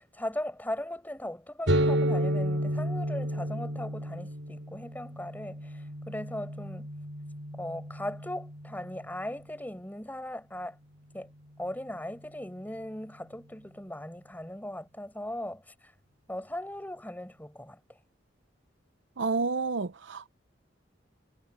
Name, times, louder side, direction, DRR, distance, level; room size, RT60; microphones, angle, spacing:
voice 1, 0.0-6.9 7.5-10.8 11.1-11.3 11.6-15.9 16.3-17.8, left 1 dB, 10° left, 5.0 m, -38 dB
sound 1, 1.7-9.3, right 1 dB, 90° right, 5.4 m, -32 dB
voice 2, 19.2-20.3, right 4 dB, 75° right, 0.7 m, -30 dB
head